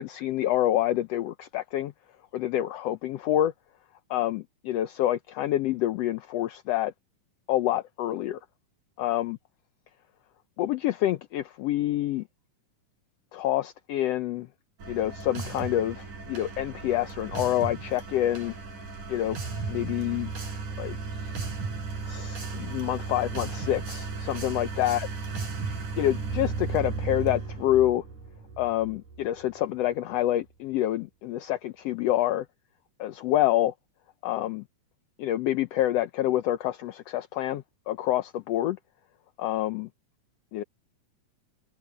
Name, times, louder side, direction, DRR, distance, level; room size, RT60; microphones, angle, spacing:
voice 1, 0.0-1.9 2.3-3.5 4.1-6.9 7.5-8.4 9.0-9.4 10.6-12.2 13.3-14.5 14.9-18.5 19.1-19.4 19.7-20.3 20.8-21.3 22.1-25.1 25.9-28.0 28.6-32.5 33.0-33.7 34.2-34.6 35.2-38.8 39.4-39.9 40.5-40.6, left 13 dB, 75° left, 1.5 m, -27 dB
sound 1, 14.8-29.5, right 4 dB, 75° right, 7.1 m, -35 dB
omnidirectional pair, 3.6 m